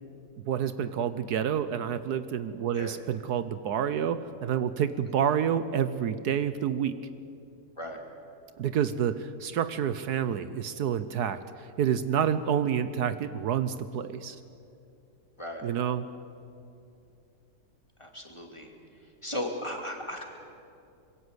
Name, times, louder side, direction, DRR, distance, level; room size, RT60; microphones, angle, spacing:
voice 1, 0.5-7.0 8.6-14.4 15.6-16.1, right 8 dB, 70° right, 12 dB, 1.3 m, -28 dB
voice 2, 18.0-18.7 19.2-20.2, left 1 dB, 15° left, 2 dB, 2.8 m, -36 dB
25.5 x 22.5 x 8.1 m, 2.6 s
omnidirectional pair, 1.8 m